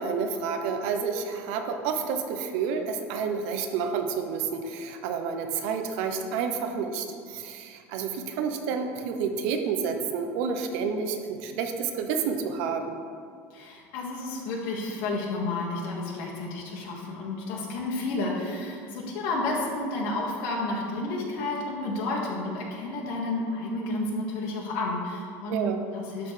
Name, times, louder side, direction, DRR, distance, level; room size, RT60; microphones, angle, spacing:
voice 1, 0.0-13.0 25.5-25.8, right 6 dB, 75° right, 6 dB, 0.7 m, -30 dB
voice 2, 13.5-26.3, left 2 dB, 70° left, -3 dB, 1.7 m, -31 dB
11.5 x 4.0 x 3.2 m, 2.2 s
supercardioid pair, 130°, 7 cm